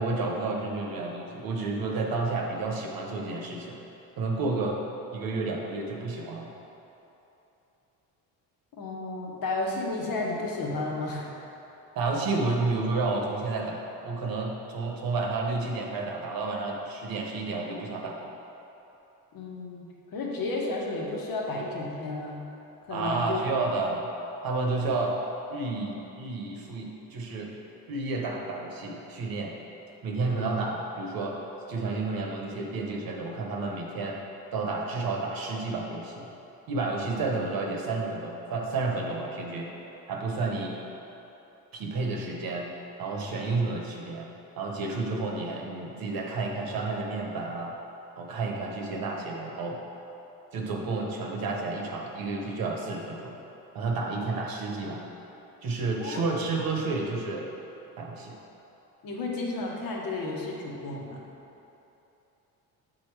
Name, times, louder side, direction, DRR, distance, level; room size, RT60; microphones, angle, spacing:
voice 1, 0.0-3.8 4.2-4.8 5.1-6.5 11.9-18.3 22.9-24.1 24.4-25.2 25.5-27.5 27.9-29.6 30.0-31.4 31.7-34.2 34.5-36.3 36.7-39.7 40.1-40.8 41.7-42.7 43.0-44.3 44.6-47.7 48.2-49.8 50.5-53.3 53.7-55.1 55.6-57.5 58.0-58.4, right 3 dB, 65° right, 0 dB, 1.1 m, -31 dB
voice 2, 8.8-11.3 19.3-22.4 22.9-23.4 56.0-56.2 59.0-61.2, left 2 dB, 60° left, -2 dB, 1.3 m, -32 dB
6.8 x 4.0 x 4.6 m, 3.0 s
cardioid pair, 90°, 38 cm